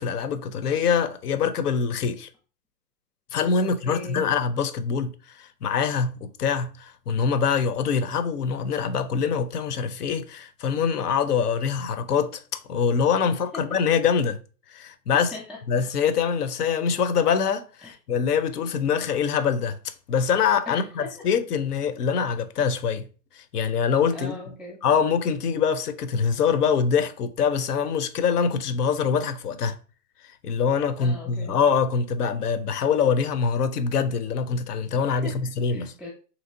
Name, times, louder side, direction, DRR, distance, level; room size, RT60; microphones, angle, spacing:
voice 1, 0.0-2.3 3.3-12.4 12.7-14.4 14.7-15.3 15.7-19.8 20.1-23.1 23.3-24.3 24.8-29.8 30.4-35.9, left 6 dB, 70° left, 0.5 m, -24 dB
voice 2, 3.6-4.2 13.3-13.8 15.1-15.6 17.8-18.0 20.7-21.3 24.1-24.8 31.0-31.6 35.0-36.1, left 2 dB, ahead, 0.3 m, -40 dB
3.0 x 2.9 x 2.6 m
hypercardioid pair, 175°, 48 cm